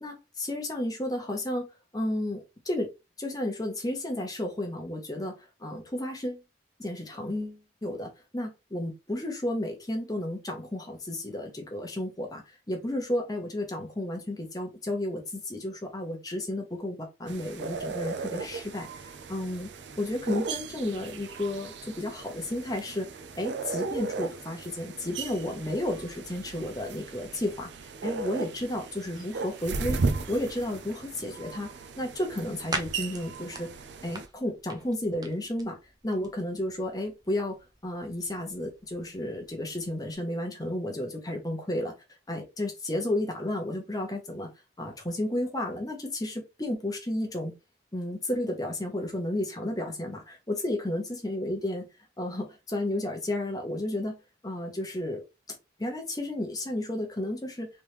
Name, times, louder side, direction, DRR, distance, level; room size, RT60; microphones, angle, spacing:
voice 1, 0.0-1.6 1.9-2.9 3.2-6.4 6.8-19.7 20.0-23.1 23.4-27.7 28.0-30.0 30.3-31.7 32.0-33.7 34.0-35.8 36.0-37.6 37.8-41.9 42.3-44.5 44.8-47.5 47.9-51.9 52.2-54.1 54.4-55.2 55.8-57.7, left 1 dB, 20° left, 1.0 m, -32 dB
sound 1, 17.3-34.3, right 4 dB, 75° right, 0.5 m, -36 dB
sound 2, 31.5-40.2, right 3 dB, 20° right, 0.6 m, -43 dB
3.5 x 3.3 x 3.1 m
head